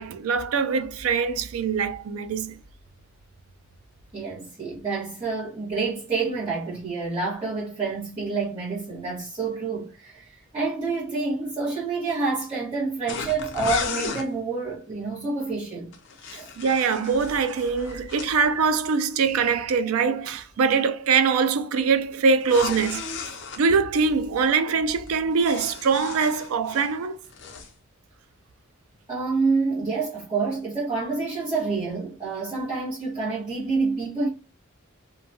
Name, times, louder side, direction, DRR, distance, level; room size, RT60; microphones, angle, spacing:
voice 1, 0.0-2.6 16.6-23.0 23.6-27.2, right 5 dB, 90° right, 0.4 m, -23 dB
voice 2, 4.1-15.9 16.3-16.5 29.1-34.3, right 4 dB, 25° right, 1.2 m, -28 dB
sound 1, 13.1-14.3 15.9-18.3 22.4-23.6 25.1-26.9 27.2-27.7, left 5 dB, 60° left, 0.5 m, -34 dB
2.7 x 2.2 x 2.7 m
head